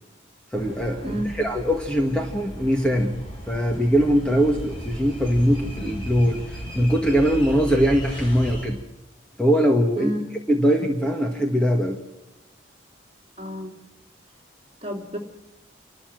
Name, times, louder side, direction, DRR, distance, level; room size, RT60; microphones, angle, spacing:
sound 1, 0.5-8.6, equal, 30° left, 6.9 m, -36 dB
voice 1, 0.5-1.0 1.4-3.2 3.5-8.8 9.4-10.1 10.5-12.0, equal, 5° left, 2 dB, 1.7 m, -21 dB
voice 2, 13.4-13.7 14.8-15.2, equal, 30° right, 2 dB, 3.3 m, -30 dB
28.0 x 13.0 x 7.8 m, 1.0 s
head